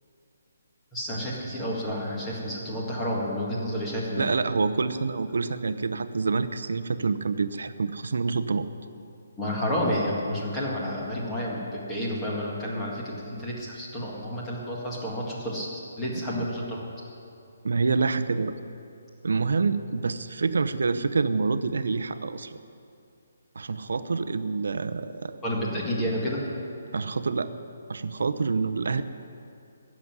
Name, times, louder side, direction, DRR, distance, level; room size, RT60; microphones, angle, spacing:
voice 1, 0.9-4.3 9.4-15.7 16.0-16.8 25.4-26.5, equal, 10° left, -5 dB, 1.8 m, -30 dB
voice 2, 4.2-8.7 16.1-16.5 17.6-18.5 19.2-22.6 23.5-25.4 26.9-27.5 27.9-29.0, right 4 dB, 70° right, 11 dB, 0.8 m, -27 dB
15.0 x 7.6 x 9.5 m, 2.6 s
hypercardioid pair, 180°, 0 cm